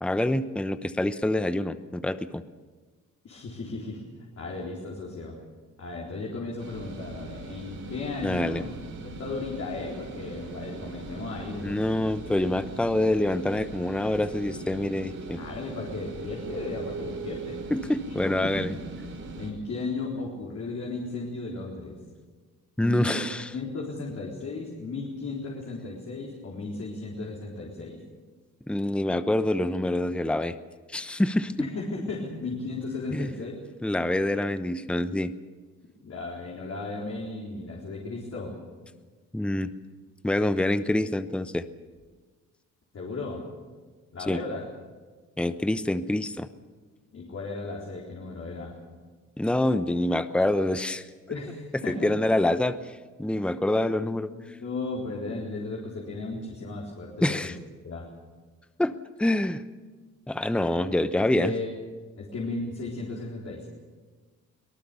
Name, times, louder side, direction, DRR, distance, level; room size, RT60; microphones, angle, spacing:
voice 1, 0.0-2.4 8.2-8.6 11.6-15.4 17.7-18.7 22.8-23.5 28.7-30.6 30.9-31.7 33.1-33.3 33.8-35.3 39.3-39.7 40.2-41.7 44.2-44.4 45.4-46.5 49.4-51.1 52.0-54.3 57.2-57.6 58.8-58.9 59.2-59.6 60.3-61.5, left 1 dB, 5° left, 12 dB, 0.9 m, -26 dB
voice 2, 3.2-4.0 4.4-5.3 5.8-8.6 9.0-11.8 15.3-17.6 18.4-18.7 19.4-22.0 22.8-23.2 23.5-28.0 31.6-33.6 36.0-38.6 42.9-43.4 44.1-44.6 47.1-48.7 51.3-52.1 54.3-57.5 57.8-58.1 61.2-61.7 62.2-63.7, left 3 dB, 55° left, -3 dB, 4.2 m, -35 dB
sound 1, 6.6-19.5, right 3 dB, 80° right, 5.8 m, -40 dB
23.5 x 18.5 x 7.0 m, 1.4 s
cardioid pair, 90°, 30 cm